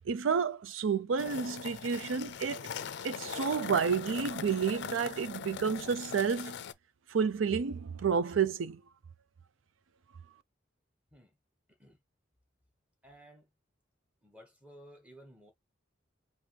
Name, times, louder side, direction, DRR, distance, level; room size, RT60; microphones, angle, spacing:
voice 1, 0.1-2.6 3.0-6.6 7.1-8.8, right 6 dB, 90° right, 0.5 m, -30 dB
sound 1, 1.2-6.7, left 7 dB, 60° left, 0.4 m, -41 dB
voice 2, 13.0-13.5 14.2-15.5, equal, 5° right, 1.4 m, -55 dB
5.1 x 2.7 x 3.1 m
head